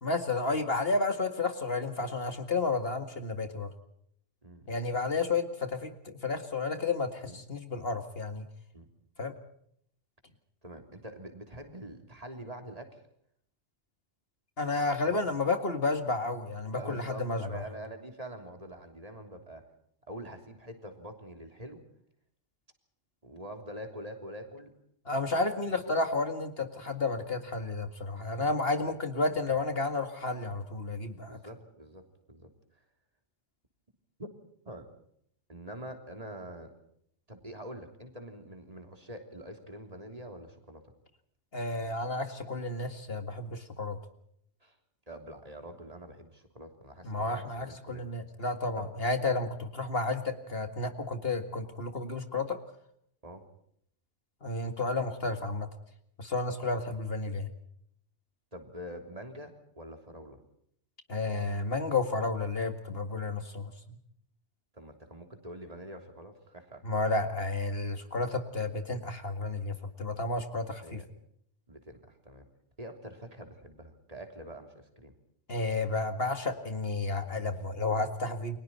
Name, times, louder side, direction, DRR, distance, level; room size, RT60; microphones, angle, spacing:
voice 1, 0.0-3.7 4.7-8.4 9.2-9.3 14.6-17.4 25.1-31.4 41.5-44.0 47.0-52.6 54.4-55.7 56.2-57.5 61.1-63.7 66.8-71.0 75.5-78.6, left 3 dB, 55° left, 7 dB, 2.2 m, -31 dB
voice 2, 4.4-5.0 7.2-7.4 8.7-8.9 10.6-13.0 15.1-15.2 16.7-19.6 20.1-21.8 23.2-24.7 25.7-25.9 28.9-29.0 31.2-32.5 34.2-34.3 34.6-34.9 35.5-36.7 37.3-40.9 44.6-44.8 45.1-48.0 48.8-48.9 53.2-53.4 58.5-60.4 64.7-66.8 70.8-71.1 71.7-72.5 72.8-75.1, right 1 dB, 30° right, 5 dB, 3.4 m, -45 dB
29.5 x 23.5 x 4.3 m, 0.71 s
omnidirectional pair, 1.2 m